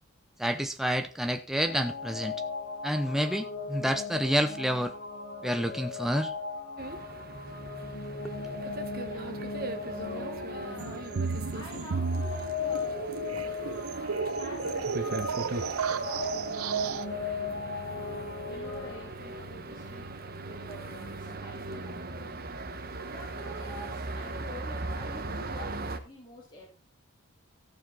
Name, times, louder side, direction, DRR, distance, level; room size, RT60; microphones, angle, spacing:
voice 1, 0.4-2.3 2.8-4.9 5.4-6.3, equal, ahead, 7 dB, 0.7 m, -29 dB
sound 1, 1.7-19.4, left 4 dB, 80° left, 2.7 m, -38 dB
sound 2, 6.8-26.0, right 2 dB, 45° right, 1.3 m, -40 dB
voice 2, 8.9-9.5 9.9-11.2 11.5-13.0 13.5-20.1 20.5-22.3 23.1-26.6, equal, 20° left, -4 dB, 3.0 m, -48 dB
sound 3, 10.8-17.1, right 5 dB, 90° right, 0.6 m, -33 dB
15.0 x 7.1 x 4.2 m, 0.34 s
head